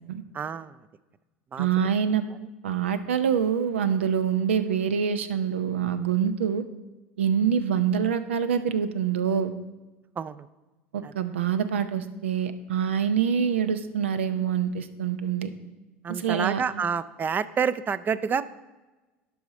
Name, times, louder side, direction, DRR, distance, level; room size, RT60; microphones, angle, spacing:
voice 1, 0.3-0.7 1.5-1.7 10.2-10.5 11.0-11.1 16.0-18.5, right 6 dB, 30° right, 15 dB, 0.4 m, -28 dB
voice 2, 1.6-2.2 2.6-6.6 7.2-9.5 10.9-15.5 16.1-16.6, right 8 dB, 85° right, 11 dB, 0.6 m, -25 dB
11.5 x 4.9 x 4.1 m, 1.1 s
hypercardioid pair, 85°, 6 cm